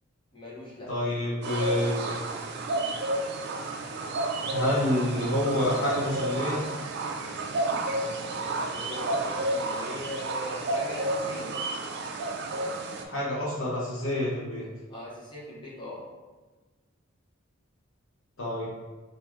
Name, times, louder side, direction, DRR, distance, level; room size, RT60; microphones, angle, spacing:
voice 1, 0.3-0.9 8.5-11.6 14.9-16.0, left 1 dB, 25° left, -5 dB, 0.9 m, -40 dB
voice 2, 0.9-2.2 4.5-6.6 13.0-14.6 18.4-18.7, left 1 dB, 75° left, -7 dB, 0.8 m, -28 dB
sound 1, 1.4-13.0, right 2 dB, 55° right, 0.4 m, -31 dB
3.6 x 2.5 x 3.0 m, 1.3 s
head